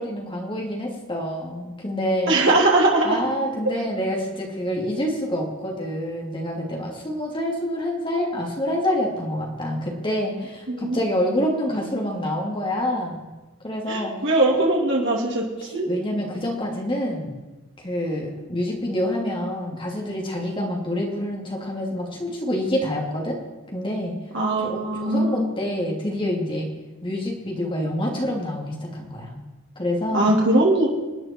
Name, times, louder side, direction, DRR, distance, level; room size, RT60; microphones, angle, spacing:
voice 1, 0.0-2.4 3.0-13.3 13.6-14.1 14.5-14.7 15.6-17.3 17.8-23.4 23.7-24.1 24.5-26.7 27.0-29.4 29.8-30.3, equal, 25° left, -1 dB, 2.8 m, -27 dB
voice 2, 2.3-3.1 10.7-11.0 13.9-15.4 15.7-15.9 24.3-25.5 30.1-30.9, right 2 dB, 60° right, -2 dB, 2.7 m, -20 dB
27.0 x 9.2 x 4.6 m, 1.2 s
head